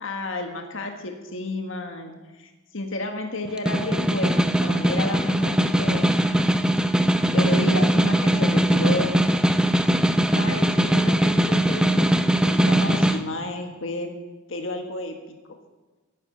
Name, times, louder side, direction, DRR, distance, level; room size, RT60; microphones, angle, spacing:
voice 1, 0.0-6.5 7.3-9.1 10.3-14.1 14.5-15.1, left 2 dB, 65° left, 4 dB, 1.7 m, -31 dB
Snare drum, 3.4-13.2, right 1 dB, 5° right, 0.6 m, -20 dB
11.5 x 9.6 x 9.7 m, 1.2 s
head